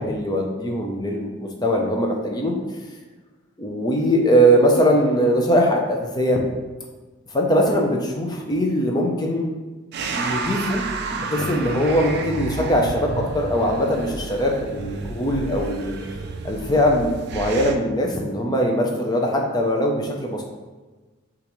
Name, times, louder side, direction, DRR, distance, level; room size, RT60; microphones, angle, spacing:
voice 1, 0.0-2.5 3.6-6.4 7.3-9.5 10.1-10.8 11.1-16.0 16.4-20.4, equal, 20° left, 0 dB, 0.5 m, -21 dB
sound 1, 9.9-17.8, right 4 dB, 50° right, 0.3 m, -31 dB
6.5 x 2.5 x 3.0 m, 1.3 s
head